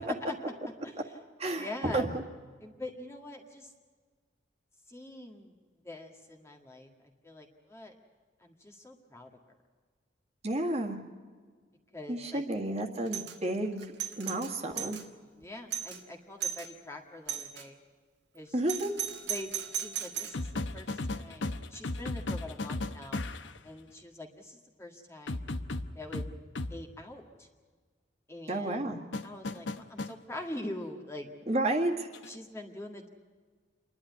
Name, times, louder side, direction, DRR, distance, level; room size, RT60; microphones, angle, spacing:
voice 1, 0.8-1.2 1.5-2.1 2.6-3.7 4.9-5.5 5.8-6.9 7.2-8.0 8.4-9.3 11.9-12.4 15.4-17.8 18.3-18.6 19.3-23.2 23.6-25.5 25.9-26.3 26.7-27.5 28.3-28.8 29.2-31.3 32.2-33.1, left 1 dB, 15° left, 1 dB, 1.8 m, -44 dB
voice 2, 1.4-2.1 10.4-11.0 12.1-13.8 14.2-15.0 18.5-18.9 28.5-29.0 31.5-32.1, right 1 dB, 35° right, 2 dB, 1.9 m, -31 dB
Doorbell, 13.1-13.4 13.8-15.0 15.4-15.5 15.7-16.0 16.4-16.7 17.3-17.7 18.7-20.4, right 9 dB, 70° right, 1.6 m, -36 dB
sound 1, 20.3-23.6 25.3-26.7 29.1-30.1 32.1-32.4, left 2 dB, 85° left, 0.9 m, -35 dB
28.0 x 11.5 x 9.6 m, 1.5 s
head